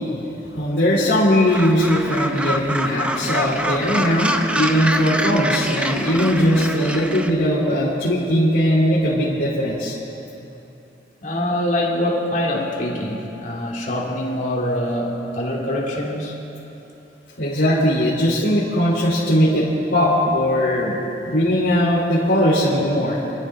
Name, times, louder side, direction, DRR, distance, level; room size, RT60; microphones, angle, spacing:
voice 1, 0.5-9.9 17.4-20.9 21.3-23.2, equal, 85° left, -10 dB, 3.5 m, -19 dB
Gull seagull, 1.5-7.3, right 1 dB, 5° right, 0.6 m, -25 dB
voice 2, 11.2-16.3, left 1 dB, 45° left, -3 dB, 2.8 m, -24 dB
29.0 x 13.0 x 3.8 m, 3.0 s
head